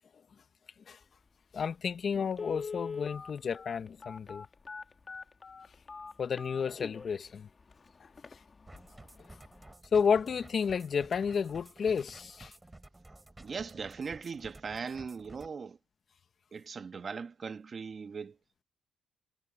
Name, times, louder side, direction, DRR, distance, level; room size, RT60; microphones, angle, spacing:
voice 1, 1.5-4.4 6.2-7.5 8.0-8.1 9.9-12.5, left 6 dB, 50° left, 1.2 m, -31 dB
Telephone, 1.6-1.7 2.3-7.2 7.7-7.8 8.2-8.4 8.7-9.0 9.3-9.4, left 5 dB, 35° left, 1.8 m, -42 dB
sound 1, 8.7-15.5, right 2 dB, 15° right, 6.0 m, -53 dB
voice 2, 13.4-15.8 16.5-18.4, right 5 dB, 40° right, 1.4 m, -39 dB
cardioid pair, 90°, 0 cm